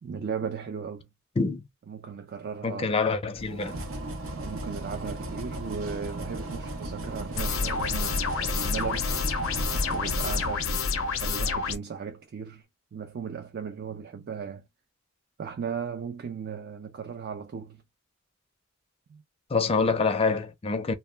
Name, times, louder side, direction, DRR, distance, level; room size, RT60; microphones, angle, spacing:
voice 1, 0.0-1.1 1.9-3.0 4.3-9.2 9.8-12.7 12.9-14.7 15.4-17.8 19.1-19.2, right 6 dB, 50° right, 0.3 m, -36 dB
voice 2, 2.6-3.7 19.5-20.9, left 4 dB, 30° left, 0.4 m, -26 dB
sound 1, 3.3-11.3, right 1 dB, 85° right, 0.7 m, -36 dB
sound 2, 7.4-11.8, left 4 dB, 80° left, 0.6 m, -28 dB
2.1 x 2.0 x 3.2 m
head